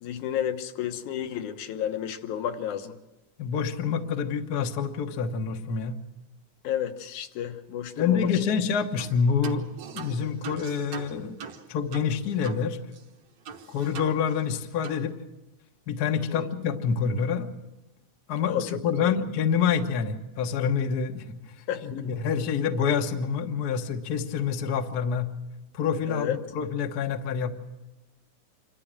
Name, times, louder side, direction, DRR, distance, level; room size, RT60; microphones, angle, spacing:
voice 1, 0.0-3.0 6.6-8.3 16.3-16.5 18.4-19.1 21.7-22.1 26.1-26.4, left 10 dB, 80° left, 7 dB, 2.5 m, -31 dB
voice 2, 3.4-6.0 8.0-9.7 9.9-11.4 11.7-12.8 13.7-15.1 15.9-17.5 18.3-21.2 21.8-25.3 25.7-27.5, left 6 dB, 60° left, 6 dB, 1.0 m, -27 dB
sound 1, 9.0-9.2 9.4-12.6 12.9-13.0 13.5-14.6 14.8-15.0, right 6 dB, 65° right, 2.3 m, -41 dB
27.0 x 13.0 x 7.4 m, 1.0 s
omnidirectional pair, 3.4 m